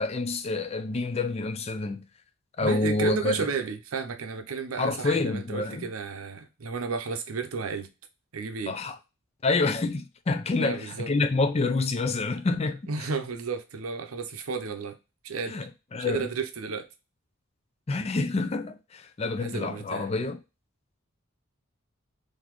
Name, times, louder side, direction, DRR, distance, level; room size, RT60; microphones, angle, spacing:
voice 1, 0.0-2.1 2.6-3.5 4.8-5.9 8.7-9.0 9.4-12.8 15.5-16.3 17.9-20.4, left 3 dB, 30° left, 0.4 m, -27 dB
voice 2, 2.6-7.9 8.3-8.7 10.6-11.1 12.9-14.9 15.2-15.7 16.0-16.9 19.4-20.1, right 5 dB, 90° right, 0.6 m, -33 dB
3.9 x 2.7 x 3.0 m
head